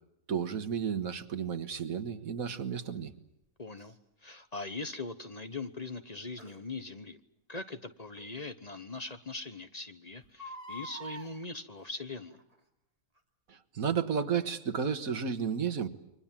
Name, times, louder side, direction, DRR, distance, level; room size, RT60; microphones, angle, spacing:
voice 1, 0.3-3.1 13.5-15.9, right 7 dB, 85° right, 10 dB, 1.9 m, -32 dB
voice 2, 3.6-7.2 7.5-12.4, left 3 dB, 30° left, 10 dB, 1.1 m, -41 dB
Crying sobbing, 3.8-3.9 6.4-6.6 8.2-8.3 8.8-8.9 9.1-9.2 10.2-11.3 12.3-12.6 13.2-13.3, right 1 dB, 25° right, 2.9 m, -45 dB
29.5 x 24.5 x 7.4 m, 0.83 s
omnidirectional pair, 1.4 m